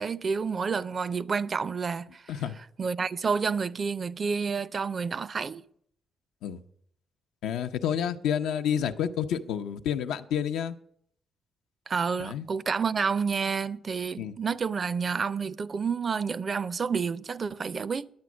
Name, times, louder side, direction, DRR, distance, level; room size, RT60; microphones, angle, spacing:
voice 1, 0.0-2.3 2.8-5.6 11.9-18.1, right 5 dB, 40° right, 0.4 m, -29 dB
voice 2, 7.4-10.8 12.2-12.4 14.2-14.3, left 9 dB, 90° left, 0.6 m, -29 dB
10.5 x 8.5 x 6.1 m
cardioid pair, 95°, 0 cm